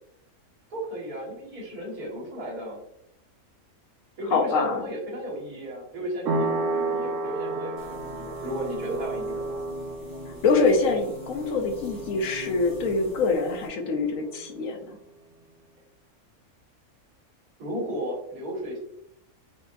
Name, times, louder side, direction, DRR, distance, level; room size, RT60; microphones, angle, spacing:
voice 1, 0.7-2.8 4.2-9.6 17.6-18.8, equal, 85° right, -4 dB, 2.2 m, -34 dB
voice 2, 4.2-4.9 10.4-15.0, left 4 dB, 70° left, 3 dB, 1.1 m, -25 dB
sound 1, 6.3-14.6, right 3 dB, 65° right, 0.9 m, -33 dB
sound 2, 7.8-13.7, left 3 dB, 25° left, 1.7 m, -44 dB
4.7 x 4.0 x 2.6 m, 0.73 s
omnidirectional pair, 1.6 m